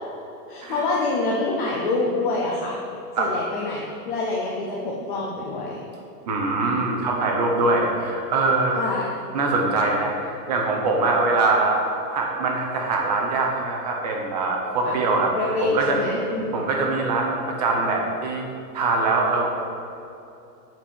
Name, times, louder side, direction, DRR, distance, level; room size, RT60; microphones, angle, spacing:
voice 1, 0.5-2.8 3.2-5.8 8.7-9.1 14.8-14.9 15.4-16.5, left 3 dB, 35° left, -4 dB, 0.6 m, -26 dB
voice 2, 6.3-8.8 9.3-15.3 15.6-16.0 16.5-18.4 18.7-19.5, right 3 dB, 25° right, 0 dB, 0.6 m, -23 dB
7.4 x 4.5 x 5.3 m, 2.8 s
supercardioid pair, 175°, 48 cm